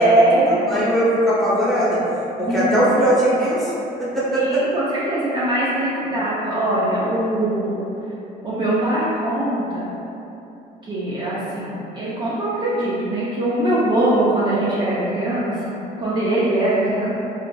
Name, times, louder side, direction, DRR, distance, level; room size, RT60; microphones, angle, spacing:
voice 1, 0.0-0.6 2.4-2.9 4.3-7.9 8.4-9.9 10.8-17.1, right 1 dB, 30° right, -10 dB, 0.5 m, -21 dB
voice 2, 0.7-2.0 2.4-3.7 4.0-4.6, right 1 dB, ahead, -10 dB, 1.0 m, -19 dB
3.8 x 2.4 x 2.3 m, 2.9 s
cardioid pair, 110°, 17 cm